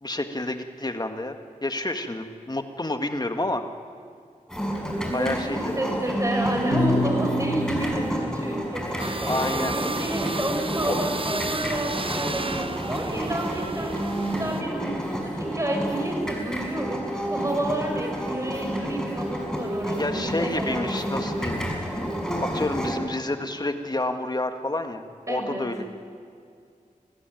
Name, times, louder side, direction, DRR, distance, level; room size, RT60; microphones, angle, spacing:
voice 1, 0.0-3.6 5.1-5.7 9.2-9.8 10.9-11.0 20.0-21.6 22.4-25.8, left 2 dB, 30° left, 6 dB, 1.9 m, -29 dB
sound 1, 4.5-23.0, equal, 5° left, 6.0 m, -30 dB
voice 2, 5.0-21.0 25.3-25.7, right 1 dB, 20° right, 1 dB, 7.3 m, -30 dB
Bass guitar, 6.7-13.0, left 3 dB, 80° left, 2.2 m, -33 dB
sound 2, 9.0-14.6, right 3 dB, 40° right, 0.8 m, -32 dB
24.0 x 15.0 x 9.2 m, 2.3 s
cardioid pair, 40°, 14 cm